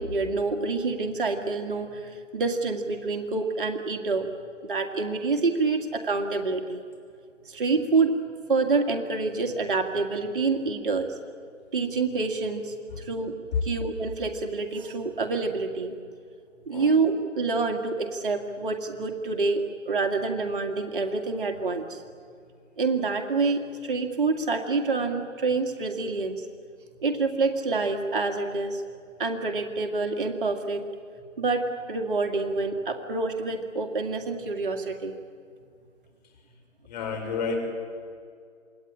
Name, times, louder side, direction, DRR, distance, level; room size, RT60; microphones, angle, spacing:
voice 1, 0.0-4.3 4.6-6.8 7.5-8.2 8.5-11.1 11.7-13.3 13.6-15.9 16.7-22.0 22.8-26.5 27.0-28.8 29.2-30.8 31.4-35.2, right 3 dB, 40° right, 5 dB, 2.1 m, -27 dB
voice 2, 36.8-37.6, left 5 dB, 35° left, 3 dB, 6.2 m, -29 dB
27.5 x 21.5 x 9.9 m, 2.2 s
figure-of-eight pair, 150°, 39 cm